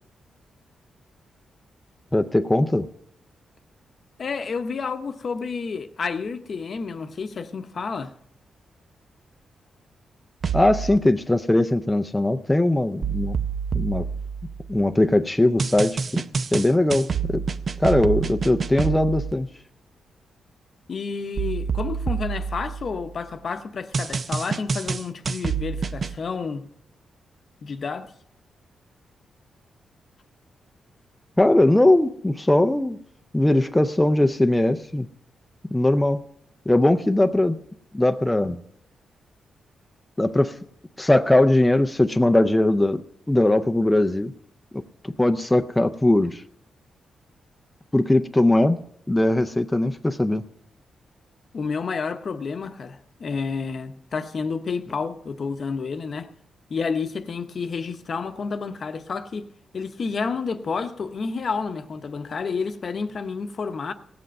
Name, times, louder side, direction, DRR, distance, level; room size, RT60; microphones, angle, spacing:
voice 1, 2.1-2.9 10.5-13.4 13.7-14.0 14.7-16.2 16.5-17.4 17.8-19.5 31.4-33.0 33.3-35.1 35.7-36.2 36.7-37.6 37.9-38.6 40.2-40.6 41.0-43.0 43.3-44.3 44.7-46.4 47.9-48.8 49.1-50.4, left 1 dB, 10° left, 0.5 m, -20 dB
voice 2, 4.2-8.1 20.9-26.6 27.6-28.1 51.5-56.3 56.7-59.5 59.7-63.9, left 5 dB, 50° left, 0.8 m, -30 dB
sound 1, 10.4-11.0 13.0-14.9 15.6-19.3 21.4-23.2 23.9-26.2, right 6 dB, 45° right, 0.5 m, -28 dB
17.5 x 7.7 x 5.3 m
cardioid pair, 110°, 0 cm